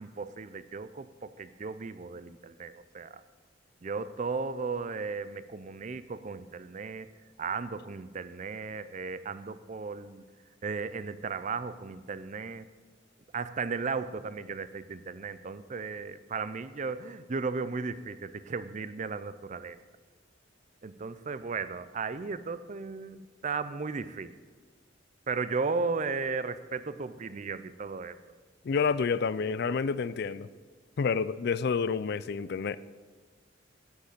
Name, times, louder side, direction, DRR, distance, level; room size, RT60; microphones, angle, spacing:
voice 1, 0.0-3.2 3.8-7.1 7.4-10.2 10.6-12.7 13.3-19.8 20.8-24.3 25.3-28.2, right 4 dB, 40° right, 13 dB, 0.5 m, -35 dB
voice 2, 28.6-30.5 31.0-32.8, left 5 dB, 55° left, 17 dB, 0.4 m, -29 dB
11.5 x 8.1 x 6.7 m, 1.5 s
head